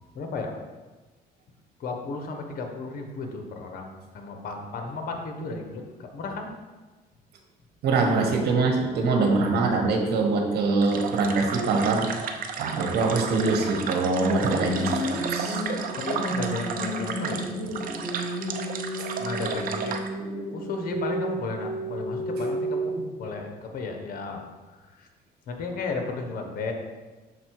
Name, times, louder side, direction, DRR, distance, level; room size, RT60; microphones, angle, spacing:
voice 1, 0.1-0.6 1.8-6.5 16.0-17.4 17.7-17.8 19.2-19.9 20.5-22.9 23.2-24.4 24.8-25.1 25.5-26.7, left 3 dB, 60° left, 3 dB, 1.1 m, -34 dB
voice 2, 7.8-12.1 12.6-15.6 19.0-19.1, right 3 dB, 75° right, 3 dB, 1.2 m, -24 dB
sound 1, 10.8-20.1, right 6 dB, 55° right, 0.7 m, -33 dB
sound 2, 14.3-23.3, right 1 dB, 10° left, 1.1 m, -32 dB
6.5 x 4.3 x 4.7 m, 1.3 s
cardioid pair, 110°, 17 cm